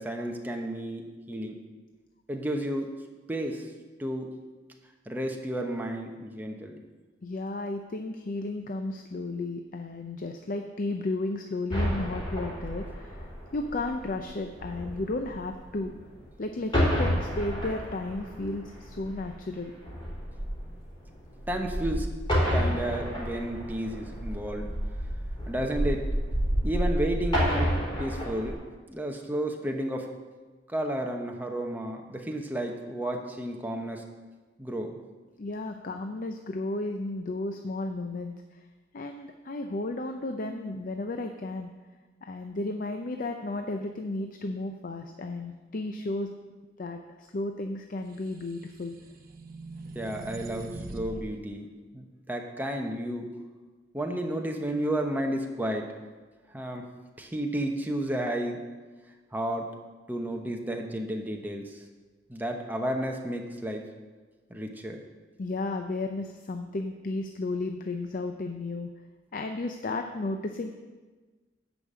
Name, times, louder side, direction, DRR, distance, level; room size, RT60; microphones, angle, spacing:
voice 1, 0.0-1.6 2.3-2.9 3.3-3.7 4.0-4.3 5.1-6.7 21.5-22.1 22.5-24.7 25.5-26.1 26.6-28.6 28.9-30.1 30.7-34.0 34.6-35.0 49.9-51.7 51.9-53.3 53.9-55.9 56.5-56.9 57.2-58.6 59.3-59.8 60.1-61.8 62.3-63.8 64.5-65.0, right 1 dB, 10° right, 2 dB, 1.0 m, -32 dB
voice 2, 7.2-13.2 13.5-15.9 16.4-19.7 35.4-38.6 38.9-41.7 42.2-46.3 46.8-48.9 65.4-68.9 69.3-70.7, left 2 dB, 45° left, 6 dB, 0.5 m, -33 dB
sound 1, 11.7-16.3 16.6-28.5, equal, 25° left, 4.0 m, -30 dB
sound 2, 48.3-51.3, right 2 dB, 50° right, 0.8 m, -41 dB
11.0 x 5.3 x 7.4 m, 1.3 s
head